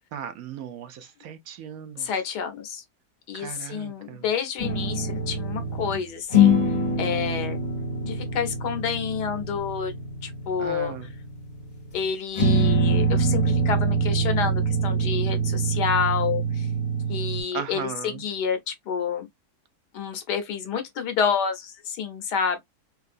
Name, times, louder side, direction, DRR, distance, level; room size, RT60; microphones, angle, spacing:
voice 1, 0.1-2.1 3.3-4.3 10.6-11.1 17.5-18.2, right 8 dB, 65° right, 1.0 m, -37 dB
voice 2, 2.0-2.8 3.3-6.6 7.0-7.6 8.0-9.9 10.2-10.9 11.9-16.7 17.1-19.3 19.9-22.6, left 7 dB, 90° left, 1.5 m, -29 dB
sound 1, 4.6-6.0 6.3-12.0 12.4-17.4, right 1 dB, 25° left, 1.2 m, -24 dB
4.6 x 2.5 x 2.5 m
omnidirectional pair, 1.7 m